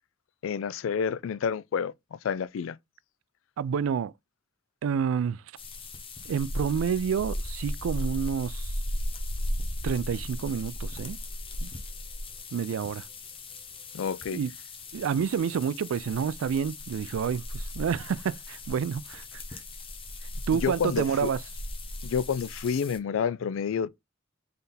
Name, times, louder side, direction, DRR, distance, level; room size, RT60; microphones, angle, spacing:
voice 1, 0.4-2.8 13.9-14.4 20.5-21.3 22.0-23.9, left 7 dB, 75° left, 0.3 m, -29 dB
voice 2, 3.6-4.1 4.8-5.4 6.3-8.7 9.8-11.2 11.6-11.7 12.5-13.1 14.3-14.5 14.9-19.6 20.5-21.4, right 7 dB, 85° right, 0.3 m, -29 dB
sound 1, 5.6-23.0, left 1 dB, 30° left, 0.8 m, -37 dB
3.8 x 3.4 x 4.1 m
head